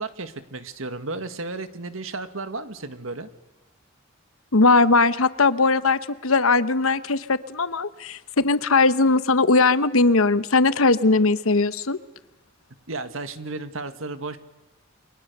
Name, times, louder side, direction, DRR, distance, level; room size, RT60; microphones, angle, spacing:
voice 1, 0.0-3.3 12.9-14.4, right 3 dB, 75° right, 10 dB, 1.8 m, -33 dB
voice 2, 4.5-12.0, left 3 dB, 85° left, 14 dB, 1.1 m, -19 dB
29.5 x 23.5 x 6.8 m, 1.1 s
head